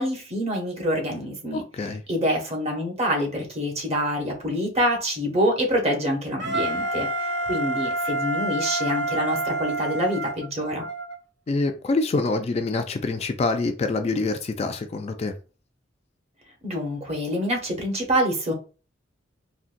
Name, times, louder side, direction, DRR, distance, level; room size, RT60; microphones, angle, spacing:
voice 1, 0.0-1.6 2.1-10.9 16.6-18.5, equal, 35° right, 0.9 m, -26 dB
voice 2, 1.5-2.0 11.5-15.3, left 3 dB, 35° left, 0.3 m, -26 dB
Wind instrument woodwind instrument, 6.4-11.2, right 2 dB, 65° right, 0.7 m, -28 dB
3.8 x 2.1 x 2.5 m
head